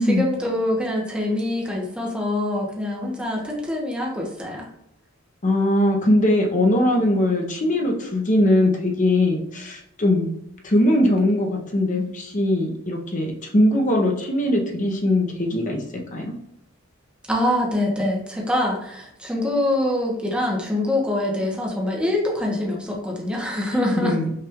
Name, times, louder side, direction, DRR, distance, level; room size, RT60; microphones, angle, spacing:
voice 1, 0.0-4.7 17.3-24.2, left 1 dB, 5° right, -2 dB, 0.9 m, -24 dB
voice 2, 5.4-10.3 10.6-15.8 16.1-16.3 23.7-24.3, left 1 dB, 40° left, 1 dB, 0.8 m, -20 dB
5.6 x 2.5 x 3.5 m, 0.78 s
head